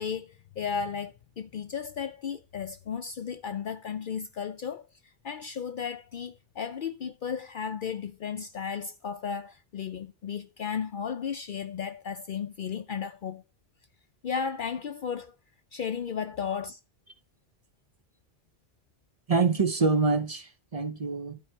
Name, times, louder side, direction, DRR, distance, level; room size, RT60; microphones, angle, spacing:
voice 1, 0.0-13.4 14.2-15.4 15.7-16.8, left 7 dB, 60° left, 0.7 m, -34 dB
voice 2, 19.3-21.4, right 4 dB, 40° right, 0.8 m, -26 dB
12.0 x 4.7 x 4.4 m
omnidirectional pair, 1.1 m